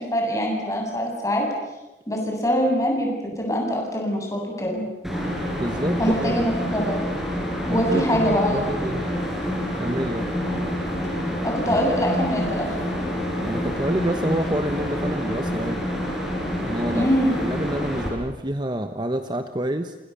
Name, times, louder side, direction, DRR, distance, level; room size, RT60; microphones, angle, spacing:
voice 1, 0.0-1.5 2.1-4.8 6.0-7.0 7.7-8.7 11.4-12.7 16.9-17.4, equal, 20° left, 0 dB, 7.8 m, -23 dB
sound 1, 5.0-18.1, equal, ahead, 7.0 m, -27 dB
voice 2, 5.5-6.4 7.7-9.0 9.8-10.3 13.4-15.9 16.6-17.1 17.4-19.9, right 1 dB, 25° right, 8 dB, 1.1 m, -27 dB
28.0 x 27.0 x 7.0 m, 1.0 s
head